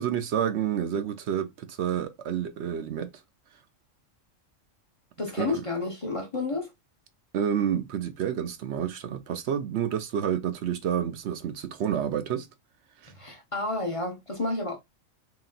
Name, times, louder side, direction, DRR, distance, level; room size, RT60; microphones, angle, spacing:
voice 1, 0.0-3.1 5.4-5.6 7.3-12.5 13.0-13.1, right 9 dB, 65° right, 0.8 m, -29 dB
voice 2, 5.2-6.7 13.1-14.8, left 2 dB, 30° left, 0.7 m, -30 dB
3.3 x 2.9 x 3.8 m
omnidirectional pair, 1.3 m